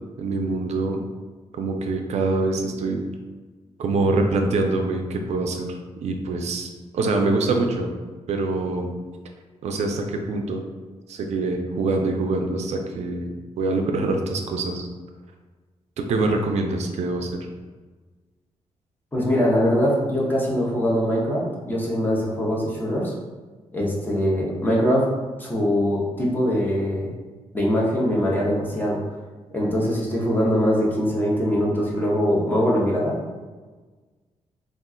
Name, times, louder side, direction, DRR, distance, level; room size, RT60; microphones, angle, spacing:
voice 1, 0.2-1.0 1.5-3.0 3.8-7.9 8.3-8.9 9.6-10.6 11.1-13.3 13.6-14.9 16.0-17.4, right 3 dB, 70° right, 3 dB, 0.4 m, -24 dB
voice 2, 19.1-23.1 23.7-25.1 25.4-27.1 27.5-29.0 29.5-33.2, equal, 15° left, -4 dB, 0.7 m, -22 dB
2.4 x 2.2 x 3.7 m, 1.3 s
cardioid pair, 110°, 12 cm